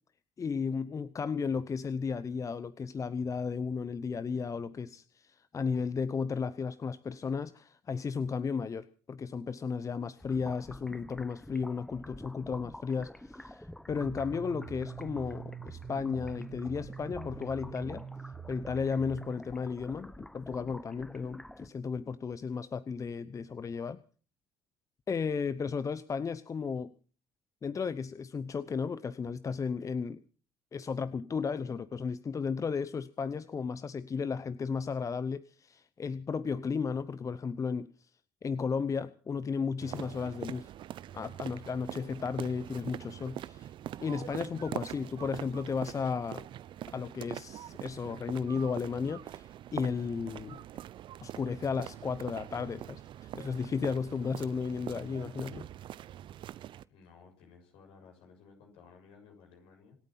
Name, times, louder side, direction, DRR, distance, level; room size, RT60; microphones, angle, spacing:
voice 1, 0.4-18.0 18.5-24.0 25.1-26.9 27.6-30.2 30.7-37.9 38.4-40.7 41.1-43.7 44.0-46.4 46.9-50.6 51.2-55.7, left 5 dB, 30° left, 16 dB, 0.8 m, -34 dB
sound 1, 10.2-21.7, left 1 dB, 5° left, 1.0 m, -49 dB
sound 2, 14.0-19.3, right 6 dB, 35° right, 1.7 m, -44 dB
sound 3, 39.8-56.8, right 12 dB, 55° right, 0.7 m, -43 dB
voice 2, 56.9-60.0, left 5 dB, 65° left, 3 dB, 6.5 m, -57 dB
26.5 x 8.9 x 5.8 m, 0.41 s
hypercardioid pair, 60°, 10 cm